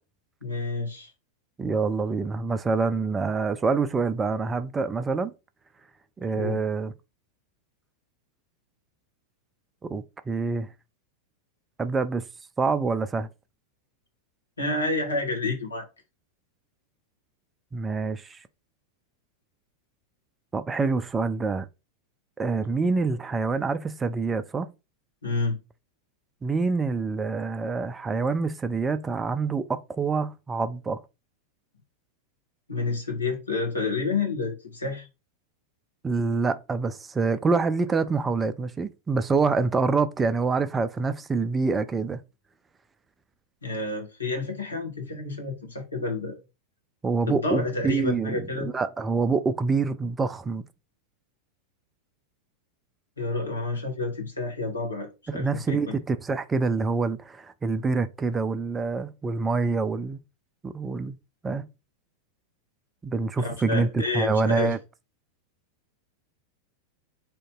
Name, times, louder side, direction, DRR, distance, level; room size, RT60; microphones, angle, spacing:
voice 1, 0.4-1.1 6.3-6.6 14.6-15.8 25.2-25.6 32.7-35.1 43.6-46.4 47.3-48.7 53.2-55.9 63.4-64.7, left 3 dB, 80° left, 1.1 m, -29 dB
voice 2, 1.6-5.3 6.2-6.9 9.8-10.7 11.8-12.2 12.6-13.3 17.7-18.4 20.5-21.7 22.4-24.7 26.4-31.0 36.0-42.2 47.0-50.6 55.3-60.2 60.6-61.2 61.4-61.7 63.0-64.8, right 4 dB, 15° right, 0.3 m, -26 dB
2.9 x 2.6 x 3.5 m
figure-of-eight pair, 90°, 0 cm